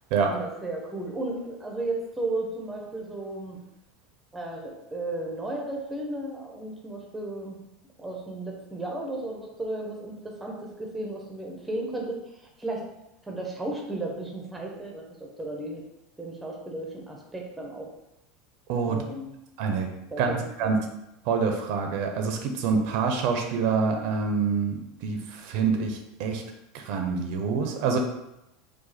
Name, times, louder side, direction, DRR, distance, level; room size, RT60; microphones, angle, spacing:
voice 1, 0.3-3.6 4.3-7.6 8.0-12.8 13.2-15.8 16.2-17.9 18.9-19.3 20.1-20.8, right 2 dB, 5° right, 0 dB, 0.6 m, -34 dB
voice 2, 20.2-20.8 21.3-26.4 26.7-28.0, right 5 dB, 50° right, 4 dB, 0.5 m, -26 dB
5.0 x 2.3 x 4.1 m, 0.89 s
supercardioid pair, 175°, 0 cm